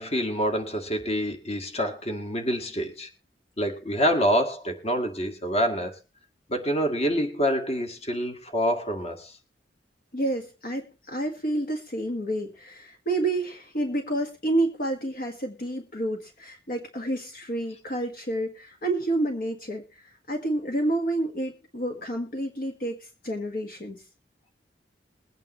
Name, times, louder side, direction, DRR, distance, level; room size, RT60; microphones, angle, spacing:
voice 1, 0.0-3.1 3.6-6.0 6.5-9.3, equal, 35° left, 5 dB, 1.9 m, -26 dB
voice 2, 10.1-24.0, right 1 dB, 50° left, 2 dB, 1.6 m, -29 dB
22.0 x 9.0 x 3.1 m, 0.30 s
head